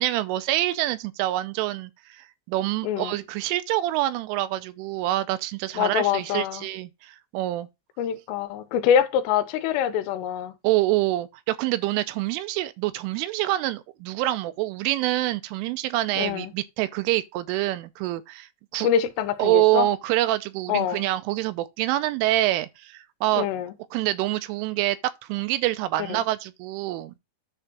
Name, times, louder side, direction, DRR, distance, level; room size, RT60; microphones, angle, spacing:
voice 1, 0.0-7.7 10.6-18.9 19.4-23.5 23.9-25.0 25.3-27.1, right 16 dB, 85° right, 3.1 m, -26 dB
voice 2, 2.8-3.2 5.8-6.7 8.0-10.5 16.2-16.5 18.8-19.9 20.7-21.0 23.4-23.7 26.1-26.2, left 9 dB, 85° left, 3.5 m, -25 dB
10.0 x 3.6 x 6.0 m
omnidirectional pair, 5.7 m